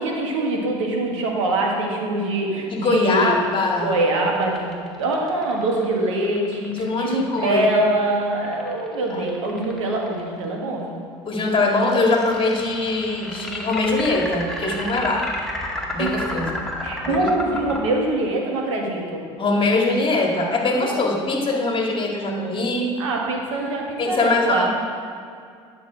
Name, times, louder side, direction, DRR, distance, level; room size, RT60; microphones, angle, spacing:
voice 1, 0.0-3.3 3.8-11.0 16.0-16.1 16.8-19.2 23.0-24.7, right 2 dB, 85° right, 0 dB, 1.6 m, -24 dB
voice 2, 2.7-4.0 6.7-7.7 9.1-9.2 11.3-15.3 15.9-16.6 17.0-17.3 19.4-22.9 24.0-24.7, left 2 dB, 35° left, 1 dB, 1.9 m, -22 dB
sound 1, 3.0-10.2 11.8-17.8, left 1 dB, 5° left, 2.0 m, -32 dB
10.5 x 6.9 x 5.0 m, 2.3 s
hypercardioid pair, 75°, 16 cm